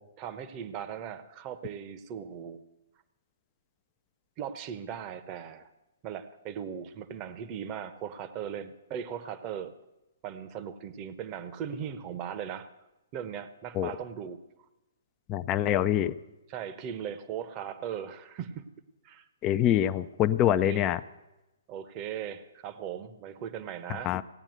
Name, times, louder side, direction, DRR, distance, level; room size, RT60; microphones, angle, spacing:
voice 1, 0.2-2.6 4.4-5.7 6.0-9.8 10.2-12.7 13.1-14.4 16.5-18.7 19.0-19.3 20.5-20.8 21.7-24.1, right 8 dB, 30° right, 12 dB, 1.0 m, -38 dB
voice 2, 15.3-16.1 19.4-21.0 24.0-24.2, left 11 dB, 25° left, 10 dB, 0.5 m, -25 dB
17.0 x 8.9 x 7.9 m, 0.99 s
figure-of-eight pair, 125°, 0 cm